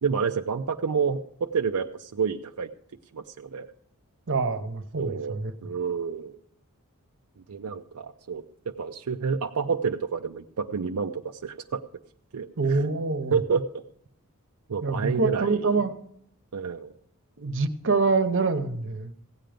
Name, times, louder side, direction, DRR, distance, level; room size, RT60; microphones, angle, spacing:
voice 1, 0.0-2.7 3.1-3.7 5.0-6.4 7.5-8.4 8.8-11.8 12.3-12.9 13.3-13.8 14.7-15.8 16.5-16.9, right 6 dB, 90° right, 5 dB, 0.5 m, -29 dB
voice 2, 4.3-5.5 12.6-13.3 14.8-15.9 17.4-19.1, right 4 dB, 60° right, 9 dB, 1.0 m, -25 dB
16.0 x 9.1 x 5.1 m, 0.69 s
head